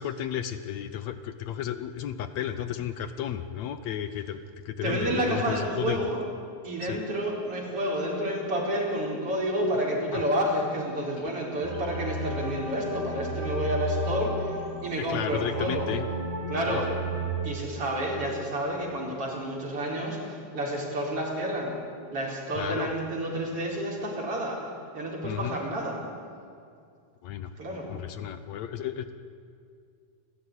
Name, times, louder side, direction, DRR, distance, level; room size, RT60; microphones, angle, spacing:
voice 1, 0.0-4.4 4.7-6.1 6.8-7.0 9.7-10.2 11.2-11.3 14.9-16.1 16.7-16.8 22.6-22.9 25.2-25.6 27.2-27.5 27.9-29.2, left 10 dB, 70° left, 11 dB, 2.1 m, -33 dB
voice 2, 4.8-6.2 6.6-15.9 16.5-16.9 17.4-21.8 22.1-24.6 24.9-26.0 27.6-27.9, right 1 dB, 50° right, -2 dB, 5.4 m, -30 dB
sound 1, 11.6-17.3, right 1 dB, 10° left, 5.9 m, -33 dB
29.5 x 14.5 x 9.9 m, 2.3 s
omnidirectional pair, 3.4 m